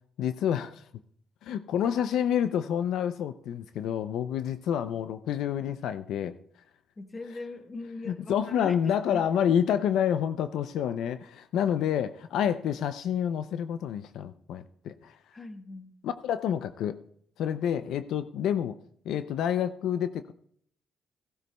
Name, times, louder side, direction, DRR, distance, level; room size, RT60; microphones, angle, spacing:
voice 1, 0.2-0.9 1.4-6.3 8.1-15.2 16.0-17.0 17.4-18.8 19.1-20.3, left 9 dB, 80° left, 11 dB, 0.4 m, -28 dB
voice 2, 7.0-8.8 9.1-9.2 15.3-15.9, left 2 dB, 30° left, 7 dB, 1.2 m, -40 dB
15.5 x 13.5 x 2.2 m, 0.66 s
cardioid pair, 90°, 0 cm